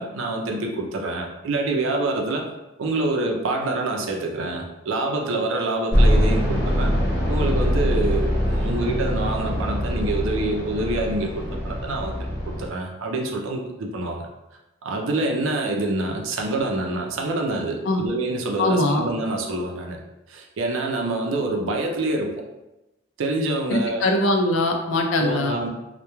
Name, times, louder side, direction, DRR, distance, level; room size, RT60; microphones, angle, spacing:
voice 1, 0.0-2.5 2.8-6.9 7.3-12.1 12.5-14.2 14.8-20.0 20.3-22.3 23.2-24.1 25.2-25.7, right 2 dB, 80° right, 2 dB, 0.4 m, -26 dB
sound 1, 5.9-12.7, equal, 55° left, 0.9 m, -23 dB
voice 2, 18.6-19.0 23.7-25.5, left 1 dB, 75° left, 3 dB, 0.4 m, -21 dB
2.2 x 2.1 x 2.9 m, 0.97 s
head